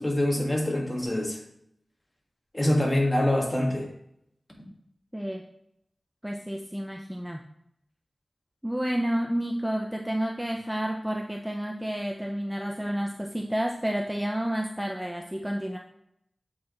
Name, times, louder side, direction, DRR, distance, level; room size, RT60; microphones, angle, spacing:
voice 1, 0.0-1.4 2.5-3.9, left 1 dB, 20° left, -1 dB, 1.8 m, -25 dB
voice 2, 6.2-7.4 8.6-15.8, equal, 10° right, 2 dB, 0.5 m, -30 dB
7.9 x 4.7 x 3.1 m, 0.76 s
wide cardioid pair, 55°, 0 cm